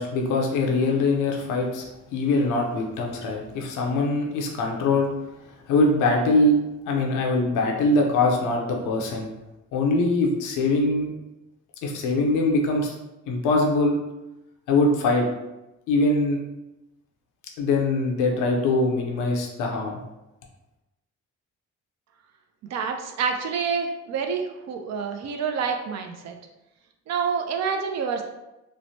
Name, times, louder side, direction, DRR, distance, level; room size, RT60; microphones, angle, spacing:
voice 1, 0.0-1.8 2.1-5.1 5.7-6.6 6.9-9.3 9.7-11.1 11.8-12.9 13.3-14.0 14.7-15.3 15.9-16.4 17.6-20.0, left 2 dB, 90° left, 1 dB, 0.6 m, -22 dB
voice 2, 22.7-26.3 27.1-28.2, right 6 dB, 60° right, 5 dB, 0.5 m, -27 dB
3.1 x 2.1 x 2.7 m, 0.95 s
cardioid pair, 90°, 30 cm